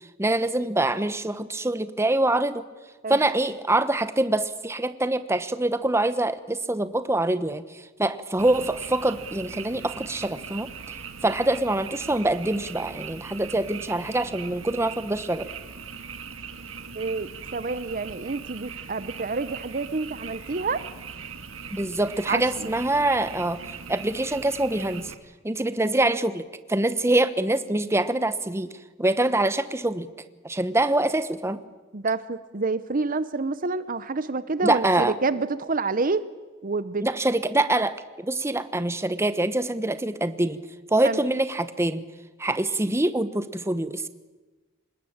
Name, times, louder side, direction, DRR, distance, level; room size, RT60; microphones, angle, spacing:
voice 1, 0.2-2.7 3.1-10.7 11.2-15.5 21.7-23.6 23.9-25.1 25.4-28.7 29.0-30.1 30.4-31.6 34.6-35.1 37.0-40.6 40.9-42.1 42.4-44.1, right 2 dB, 15° right, 12 dB, 1.0 m, -25 dB
Frog, 8.4-25.1, right 6 dB, 80° right, 1.9 m, -40 dB
voice 2, 16.9-20.8 22.3-22.7 31.9-36.2 36.6-37.1 41.0-41.2, right 3 dB, 45° right, 14 dB, 0.8 m, -28 dB
26.0 x 20.5 x 8.8 m, 1.3 s
head